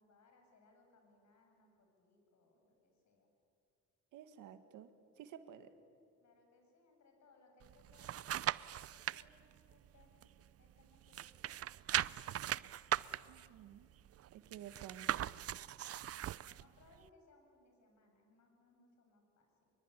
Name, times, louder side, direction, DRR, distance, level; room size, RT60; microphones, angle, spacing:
voice 1, 0.0-3.3 6.2-8.4 8.9-10.2 10.6-12.4 16.0-19.7, left 3 dB, 65° left, 3 dB, 7.1 m, -69 dB
voice 2, 4.1-4.9 5.2-5.7 13.3-13.9 14.3-15.2, right 10 dB, 90° right, 9 dB, 1.8 m, -52 dB
sound 1, 7.6-9.2 9.7-10.8 11.1-16.6 17.1-17.2, right 12 dB, 50° right, 0.6 m, -39 dB
25.0 x 23.0 x 9.9 m, 2.4 s
cardioid pair, 90°, 30 cm